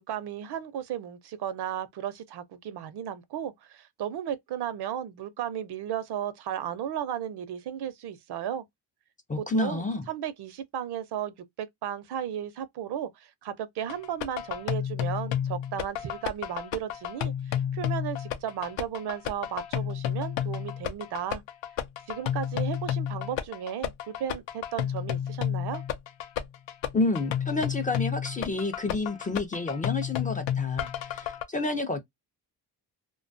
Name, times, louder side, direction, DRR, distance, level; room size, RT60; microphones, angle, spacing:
voice 1, 0.0-8.6 9.4-21.4 22.1-25.8, right 10 dB, 65° right, 0.6 m, -35 dB
voice 2, 9.3-10.0 26.9-32.0, left 3 dB, 20° left, 0.4 m, -29 dB
sound 1, 13.9-31.4, left 10 dB, 90° left, 0.5 m, -31 dB
2.3 x 2.2 x 2.5 m
cardioid pair, 100°, 43 cm